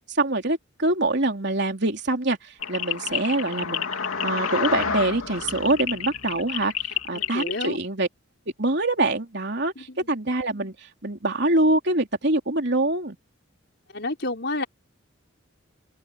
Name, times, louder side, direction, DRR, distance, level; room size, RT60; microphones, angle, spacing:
voice 1, 0.1-3.9 4.2-6.7 7.1-8.1 8.6-13.2, right 2 dB, 55° right, 3.6 m, -24 dB
sound 1, 2.6-7.7, left 7 dB, 80° left, 3.0 m, -29 dB
voice 2, 7.1-7.8 9.7-10.1 13.9-14.7, left 2 dB, 55° left, 5.1 m, -30 dB
open air
head